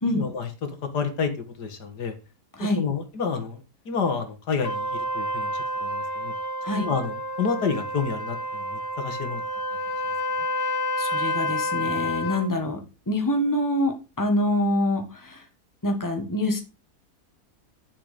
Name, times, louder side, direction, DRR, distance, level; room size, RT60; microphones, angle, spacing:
voice 1, 0.1-1.3 1.6-2.1 2.6-3.6 3.9-6.3 6.7-9.4, left 5 dB, 90° left, 6 dB, 2.3 m, -29 dB
Trumpet, 4.6-12.5, left 1 dB, 40° left, 1.8 m, -29 dB
voice 2, 11.0-12.8 13.1-15.4 15.8-16.6, left 1 dB, 10° left, 5 dB, 1.7 m, -25 dB
9.1 x 7.2 x 5.1 m, 0.29 s
omnidirectional pair, 1.7 m